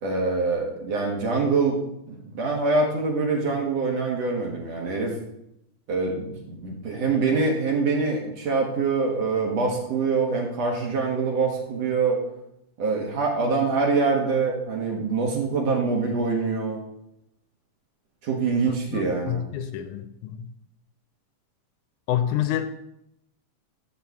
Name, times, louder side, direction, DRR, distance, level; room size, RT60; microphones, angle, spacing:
voice 1, 0.0-1.8 2.1-5.1 5.9-12.2 12.8-16.8 18.2-19.5, right 4 dB, 60° right, 0 dB, 2.5 m, -24 dB
voice 2, 18.6-20.5 22.1-22.7, left 10 dB, 80° left, 9 dB, 2.0 m, -28 dB
12.0 x 4.0 x 7.0 m, 0.81 s
omnidirectional pair, 3.7 m